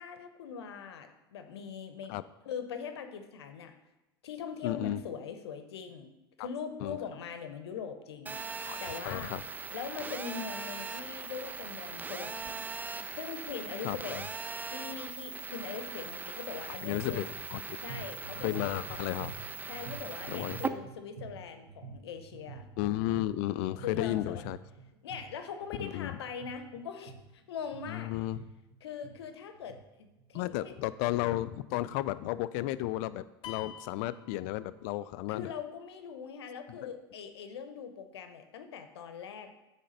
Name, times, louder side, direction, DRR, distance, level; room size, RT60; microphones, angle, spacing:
voice 1, 0.0-2.2 2.5-3.7 4.2-6.1 6.4-9.3 9.7-12.6 13.1-14.2 14.7-17.2 17.8-18.7 19.7-22.7 23.8-24.5 25.0-28.1 28.8-30.7 35.3-39.5, left 6 dB, 80° left, 8 dB, 0.8 m, -41 dB
voice 2, 4.6-5.0 6.8-7.0 8.7-8.8 9.0-9.4 13.8-14.3 16.8-17.6 18.3-19.4 20.3-20.6 22.8-24.6 25.8-26.2 27.9-28.5 30.3-35.5 36.7-36.9, left 15 dB, 55° left, 15 dB, 0.4 m, -33 dB
Telephone, 8.3-20.7, right 4 dB, 15° right, 0.4 m, -40 dB
sound 1, 17.8-30.5, right 5 dB, 75° right, 0.9 m, -49 dB
sound 2, 33.4-35.1, left 9 dB, 40° left, 0.9 m, -47 dB
8.5 x 3.4 x 5.2 m, 1.0 s
hypercardioid pair, 90°, 14 cm